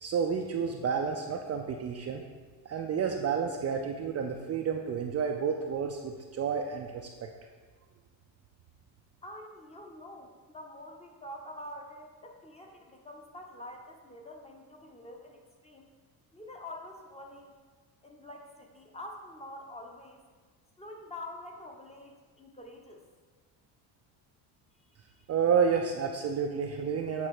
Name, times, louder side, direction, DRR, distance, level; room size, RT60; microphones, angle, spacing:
voice 1, 0.0-2.2 2.7-7.1 25.3-27.3, right 6 dB, 35° right, 2 dB, 0.4 m, -30 dB
voice 2, 9.2-15.9 16.3-17.6 18.0-20.2 20.8-23.0, left 1 dB, 15° left, 2 dB, 0.8 m, -46 dB
8.1 x 3.3 x 4.8 m, 1.5 s
cardioid pair, 110°, 46 cm